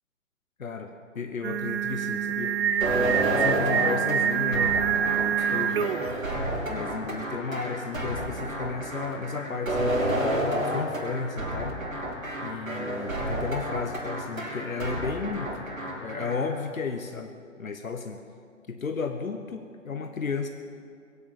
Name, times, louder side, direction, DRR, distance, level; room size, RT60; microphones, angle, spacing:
voice 1, 0.6-2.6 2.9-6.3 6.7-11.8 12.4-15.7 16.0-18.2 18.7-20.5, left 5 dB, 80° left, 5 dB, 1.3 m, -34 dB
Singing, 1.4-6.2, right 9 dB, 50° right, 0.7 m, -26 dB
sound 1, 2.8-16.4, right 1 dB, 85° right, 5.4 m, -30 dB
22.5 x 8.6 x 7.4 m, 2.3 s
figure-of-eight pair, 130°, 40 cm